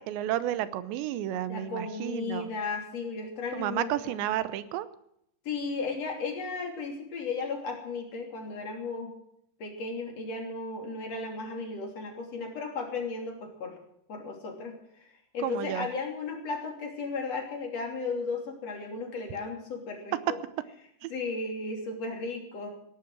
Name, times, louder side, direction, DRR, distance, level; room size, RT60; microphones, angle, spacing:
voice 1, 0.0-2.5 3.5-4.9 15.4-15.9 21.0-21.1, right 12 dB, 85° right, 14 dB, 3.1 m, -32 dB
voice 2, 1.5-4.2 5.5-9.1 9.6-13.8 14.1-20.4 21.1-22.7, left 4 dB, 40° left, 2 dB, 3.7 m, -35 dB
17.5 x 11.5 x 6.2 m, 0.74 s
omnidirectional pair, 5.1 m